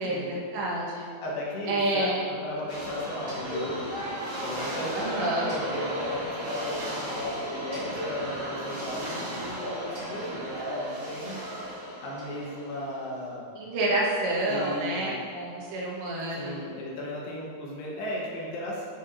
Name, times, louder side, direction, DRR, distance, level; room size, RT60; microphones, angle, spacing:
voice 1, 0.0-1.1 1.7-2.2 4.9-5.5 13.6-16.6, right 1 dB, 80° right, -5 dB, 3.6 m, -28 dB
voice 2, 1.2-4.0 4.4-11.7 12.0-13.4 14.5-15.2 16.3-18.9, left 1 dB, 75° left, -4 dB, 3.2 m, -36 dB
sound 1, 2.7-13.1, equal, 35° right, 1.8 m, -34 dB
11.5 x 5.8 x 2.8 m, 2.4 s
omnidirectional pair, 5.0 m